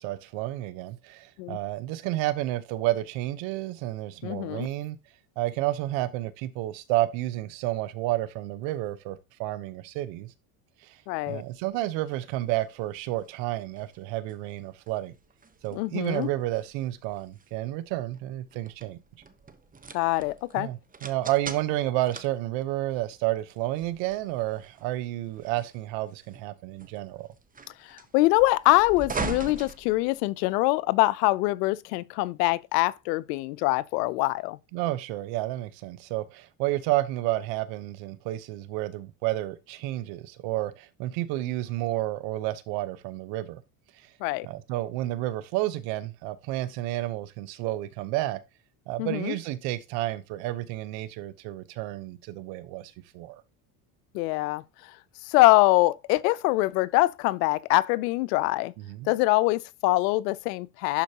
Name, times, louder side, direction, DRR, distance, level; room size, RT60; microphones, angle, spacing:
voice 1, 0.0-5.0 5.4-10.3 10.8-11.0 11.3-15.1 15.6-19.0 20.6-27.3 34.7-43.6 44.4-48.4 48.9-53.4 58.8-59.1, right 16 dB, 70° right, 1.1 m, -31 dB
voice 2, 4.2-4.7 11.1-11.4 15.7-16.3 19.9-20.7 27.9-34.6 44.2-44.5 49.0-49.3 54.1-54.6 55.3-58.7 59.1-61.0, left 19 dB, 90° left, 0.7 m, -24 dB
sound 1, 11.2-30.6, right 4 dB, 20° right, 1.0 m, -43 dB
11.5 x 4.6 x 2.9 m
supercardioid pair, 105°, 46 cm